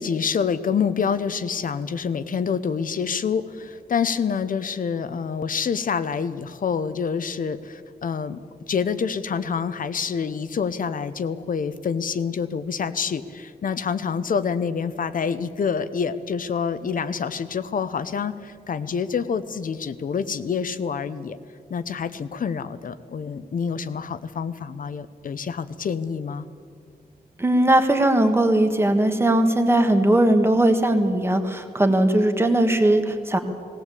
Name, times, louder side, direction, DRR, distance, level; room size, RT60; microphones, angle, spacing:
voice 1, 0.0-8.4 8.7-21.4 21.7-26.5, left 6 dB, 60° left, 13 dB, 0.8 m, -27 dB
voice 2, 27.4-33.4, right 1 dB, 15° right, 6 dB, 1.6 m, -19 dB
18.5 x 17.5 x 8.4 m, 2.2 s
wide cardioid pair, 155°, 16 cm